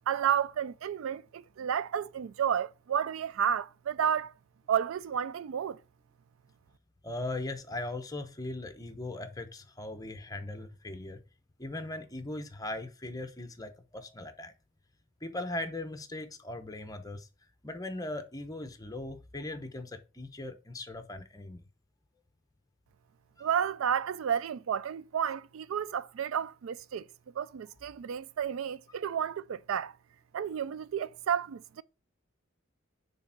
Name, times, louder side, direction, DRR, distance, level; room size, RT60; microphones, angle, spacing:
voice 1, 0.1-4.3 4.7-5.8 23.4-27.0 27.4-29.9 30.3-31.8, right 8 dB, 80° right, 0.4 m, -31 dB
voice 2, 7.0-11.2 11.6-14.5 15.2-17.3 17.6-21.6 23.4-23.5, left 2 dB, 20° left, 0.8 m, -39 dB
6.5 x 3.5 x 5.7 m
head